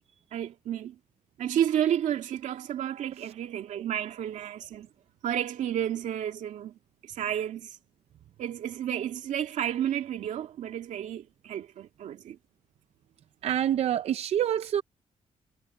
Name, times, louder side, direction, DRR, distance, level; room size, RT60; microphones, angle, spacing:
voice 1, 0.3-1.0 1.4-4.9 5.2-6.7 7.2-7.7 8.4-12.4, right 10 dB, 90° right, 2.3 m, -31 dB
voice 2, 13.4-14.8, right 10 dB, 60° right, 0.5 m, -26 dB
wide cardioid pair, 160°, 12 cm